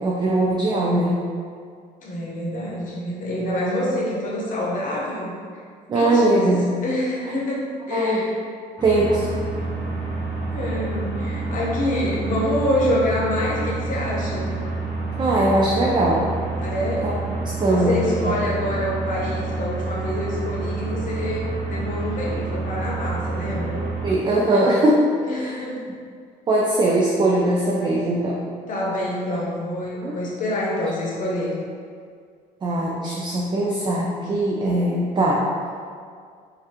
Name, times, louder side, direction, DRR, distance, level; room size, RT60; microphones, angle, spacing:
voice 1, 0.0-1.2 5.9-6.7 7.2-7.3 7.9-8.2 8.8-9.3 15.2-16.3 17.0-17.1 17.5-18.4 23.8-25.6 26.5-28.4 30.0-30.2 32.6-35.5, right 1 dB, 25° right, -4 dB, 0.4 m, -21 dB
voice 2, 2.0-5.3 5.9-6.5 6.8-8.3 9.6-9.7 10.5-14.5 16.6-17.1 17.6-23.8 25.2-25.8 28.7-31.5, left 1 dB, 50° left, -5 dB, 0.8 m, -26 dB
sound 1, 8.8-24.2, right 3 dB, 10° left, 0.8 m, -28 dB
3.1 x 2.5 x 2.8 m, 2.1 s
cardioid pair, 110°, 17 cm